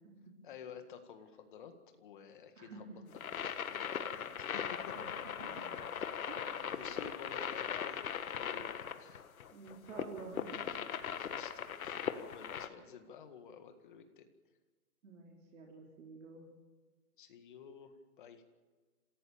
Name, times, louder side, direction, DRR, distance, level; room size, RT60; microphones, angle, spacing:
voice 1, 0.4-2.9 3.2-5.2 6.6-9.2 11.2-14.3 17.2-18.4, left 7 dB, 35° left, 8 dB, 1.9 m, -52 dB
voice 2, 2.6-3.0 5.0-5.5 6.3-6.7 8.6-8.7 9.5-10.8 15.0-16.4, right 4 dB, 55° right, -1 dB, 4.1 m, -50 dB
sound 1, 3.1-12.7, left 8 dB, 65° left, 1.6 m, -39 dB
26.5 x 16.5 x 7.2 m, 1.3 s
hypercardioid pair, 170°, 46 cm